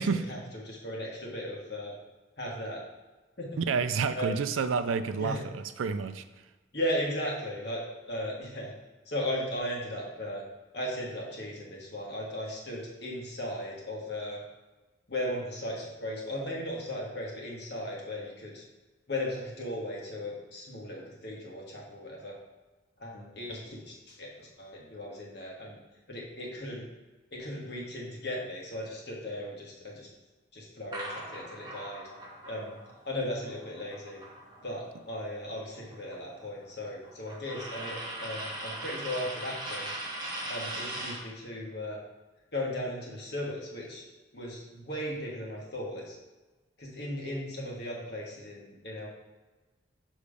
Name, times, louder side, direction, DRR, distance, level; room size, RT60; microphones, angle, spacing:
voice 1, 0.0-2.0 2.4-2.8 3.4-3.6 4.1-4.4 5.2-5.4 6.7-7.8 8.1-8.7 9.0-10.4 10.7-14.4 15.1-18.6 19.1-22.4 23.0-25.8 26.1-26.9 27.3-30.1 30.5-32.0 32.5-32.8 33.0-34.2 34.6-39.9 40.5-42.0 42.5-44.0 44.3-46.1 46.8-49.1, left 1 dB, 55° left, -3 dB, 1.4 m, -36 dB
voice 2, 3.6-6.2, right 5 dB, 90° right, 11 dB, 0.4 m, -29 dB
sound 1, 30.9-35.0 35.3-41.3, right 1 dB, 20° right, 1.0 m, -40 dB
6.7 x 3.1 x 4.9 m, 1.2 s
head